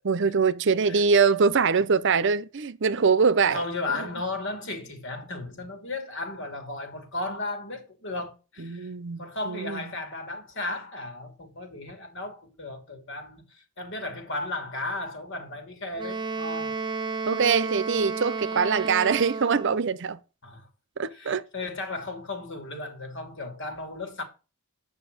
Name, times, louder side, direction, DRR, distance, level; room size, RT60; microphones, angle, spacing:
voice 1, 0.0-3.6 8.6-9.8 17.3-20.2 21.0-21.5, right 5 dB, 60° right, 0.6 m, -23 dB
voice 2, 3.5-8.9 9.2-16.8 20.4-20.7 21.1-24.2, left 2 dB, 60° left, 2.7 m, -35 dB
Wind instrument woodwind instrument, 16.0-19.9, right 4 dB, 20° right, 0.8 m, -32 dB
9.1 x 5.8 x 5.1 m
head